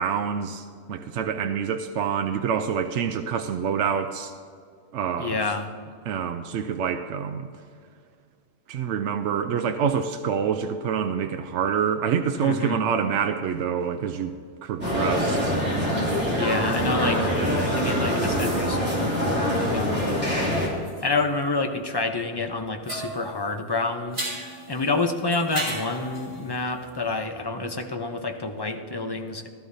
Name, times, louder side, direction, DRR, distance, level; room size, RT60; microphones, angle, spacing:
voice 1, 0.0-4.3 4.9-5.4 6.1-7.5 8.7-14.3 14.6-16.2, right 7 dB, 80° right, 7 dB, 0.9 m, -27 dB
voice 2, 5.2-5.7 12.4-12.8 16.3-20.6 21.0-24.3 24.7-29.5, left 3 dB, 25° left, 4 dB, 0.7 m, -28 dB
sound 1, 14.8-20.7, equal, 10° right, 2.8 m, -24 dB
sound 2, 19.6-22.5 22.8-27.2, right 1 dB, 35° right, 3.4 m, -37 dB
16.0 x 13.0 x 2.7 m, 2.2 s
omnidirectional pair, 1.2 m